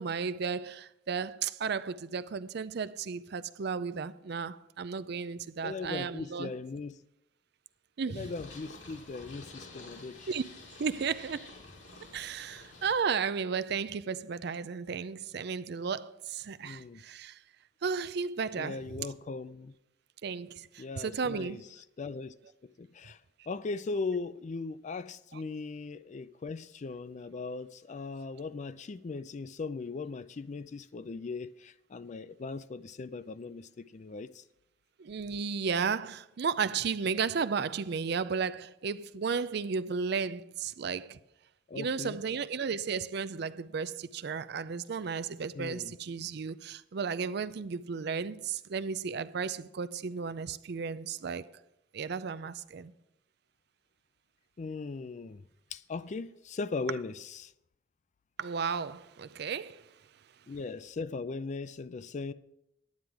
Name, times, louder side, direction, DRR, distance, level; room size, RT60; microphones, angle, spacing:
voice 1, 0.0-6.5 8.0-8.3 10.3-10.4 10.8-11.5 12.1-17.4 17.8-19.1 20.2-21.6 25.3-25.4 35.0-41.2 41.7-51.5 51.9-52.9 58.4-59.8, right 5 dB, 60° right, 0.5 m, -34 dB
voice 2, 5.6-7.0 8.1-10.3 16.6-17.0 18.5-19.7 20.8-21.6 22.0-22.3 22.6-23.2 23.5-34.4 41.7-42.2 45.5-45.9 54.6-55.4 55.7-57.5 60.5-62.3, left 4 dB, 40° left, 0.4 m, -39 dB
Purr, 8.1-13.0, left 2 dB, 75° left, 2.4 m, -50 dB
10.5 x 9.5 x 4.7 m
head